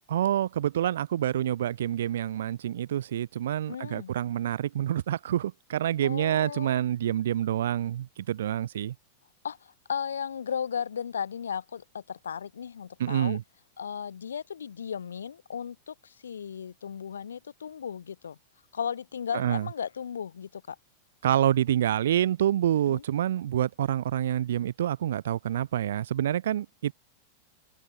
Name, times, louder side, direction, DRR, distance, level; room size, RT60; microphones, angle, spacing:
voice 1, 0.1-8.9 13.0-13.4 19.3-19.7 21.2-26.9, right 11 dB, 60° right, 1.5 m, -27 dB
voice 2, 3.7-4.1 6.0-6.8 9.4-9.6 9.9-13.4 13.8-18.4 18.7-20.8 22.9-23.0, left 7 dB, 70° left, 6.9 m, -35 dB
figure-of-eight pair, 90°, 0 cm